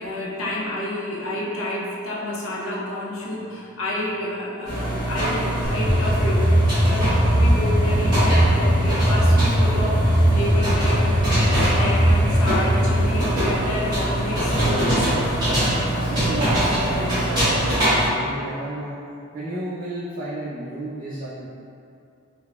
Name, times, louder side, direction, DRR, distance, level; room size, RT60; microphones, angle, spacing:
voice 1, 0.0-6.5 6.8-15.3, left 1 dB, 80° left, -5 dB, 0.6 m, -30 dB
sound 1, 4.6-18.1, right 1 dB, 20° right, 1.2 m, -23 dB
sound 2, 5.6-13.0, equal, 30° left, 0.6 m, -20 dB
voice 2, 15.9-19.0 19.3-21.5, right 1 dB, 40° right, -12 dB, 0.5 m, -32 dB
4.0 x 2.1 x 2.3 m, 2.6 s
head